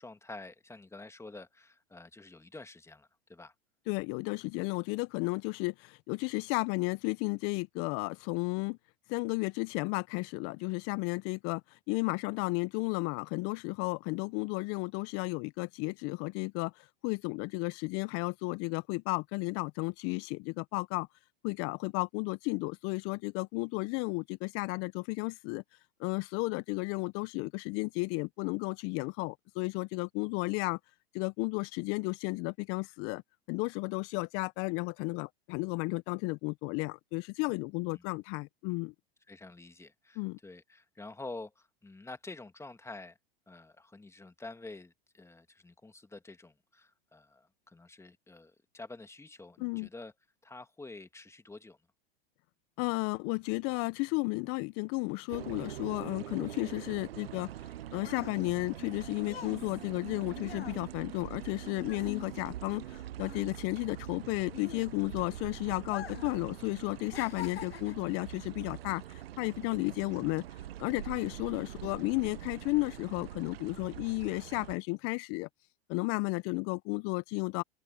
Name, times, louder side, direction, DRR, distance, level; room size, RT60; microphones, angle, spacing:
voice 1, 0.0-3.5 37.8-38.1 39.3-43.2 43.5-50.1 50.4-51.8 69.6-69.8, left 2 dB, 10° left, 2.3 m, -48 dB
voice 2, 3.9-8.8 9.1-21.1 21.4-25.6 26.0-30.8 31.1-33.2 33.5-38.9 40.2-40.4 49.6-49.9 52.8-57.5 57.9-70.4 70.8-75.5 75.9-77.6, left 27 dB, 50° left, 1.2 m, -33 dB
sound 1, 55.3-74.8, right 13 dB, 80° right, 0.6 m, -44 dB
sound 2, 57.5-62.9 63.1-65.3 65.8-66.4 66.7-68.1 68.8-69.0, left 9 dB, 85° left, 1.6 m, -46 dB
open air
hypercardioid pair, 95°, 30 cm